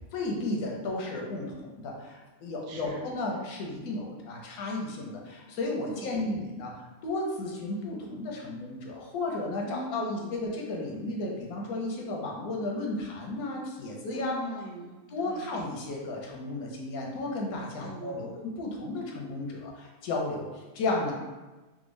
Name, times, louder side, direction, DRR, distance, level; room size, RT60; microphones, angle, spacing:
voice 1, 0.1-14.4 15.1-21.1, left 2 dB, 85° left, 0 dB, 1.1 m, -33 dB
voice 2, 2.7-3.0 5.9-6.2 9.7-10.4 14.1-15.5 17.8-18.4, right 1 dB, 70° right, -1 dB, 0.6 m, -41 dB
3.5 x 2.1 x 3.1 m, 1.2 s
omnidirectional pair, 1.6 m